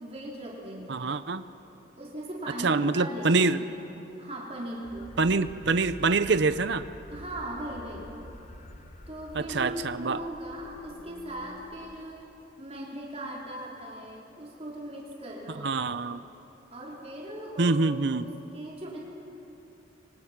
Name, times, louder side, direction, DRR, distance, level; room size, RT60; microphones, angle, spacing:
voice 1, 0.0-1.1 2.0-3.8 4.2-5.1 7.1-8.1 9.1-12.2 12.6-15.7 16.7-17.8 18.1-19.0, right 1 dB, 30° right, -4 dB, 4.4 m, -39 dB
voice 2, 0.9-1.4 2.6-3.6 5.2-6.8 9.3-10.2 15.6-16.2 17.6-18.2, right 3 dB, 60° right, 12 dB, 0.7 m, -25 dB
sound 1, 4.8-12.0, left 1 dB, 35° left, 1.2 m, -48 dB
26.5 x 25.0 x 6.0 m, 3.0 s
head